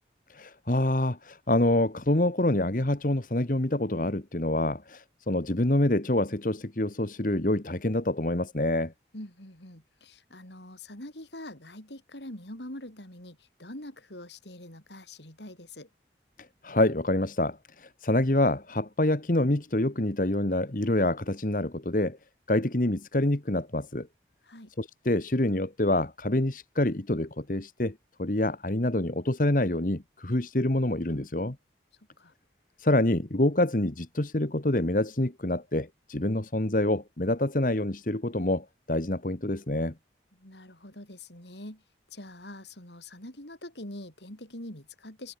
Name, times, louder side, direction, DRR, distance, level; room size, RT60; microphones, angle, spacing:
voice 1, 0.3-8.9 16.6-22.2 22.5-24.1 24.8-27.9 28.2-31.6 32.8-39.9, left 1 dB, 50° left, 1.5 m, -26 dB
voice 2, 9.1-15.9 24.4-24.7 32.2-32.3 40.4-41.8 42.1-45.3, left 1 dB, 80° left, 6.8 m, -44 dB
head